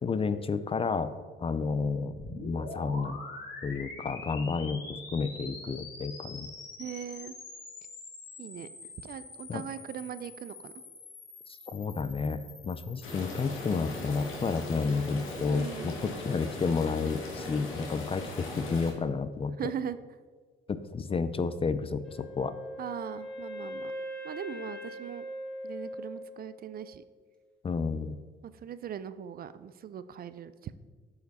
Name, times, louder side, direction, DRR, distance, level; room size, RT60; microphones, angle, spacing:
voice 1, 0.0-1.1 1.4-3.2 3.6-6.5 9.5-9.6 11.7-19.5 20.7-22.5 27.6-28.2, left 4 dB, 30° left, 13 dB, 0.4 m, -31 dB
sound 1, 2.2-15.5, left 3 dB, 65° left, 2.1 m, -45 dB
voice 2, 6.8-7.3 8.4-8.7 9.0-10.7 15.4-16.1 19.6-20.0 22.8-23.9 24.2-25.3 25.6-27.0 28.6-30.7, right 9 dB, 50° right, 14 dB, 0.4 m, -40 dB
sound 2, 13.0-18.9, left 2 dB, 80° left, 1.5 m, -39 dB
Wind instrument woodwind instrument, 22.0-26.9, equal, 5° left, 1.7 m, -41 dB
8.2 x 4.9 x 4.1 m, 1.5 s
cardioid pair, 90°, 20 cm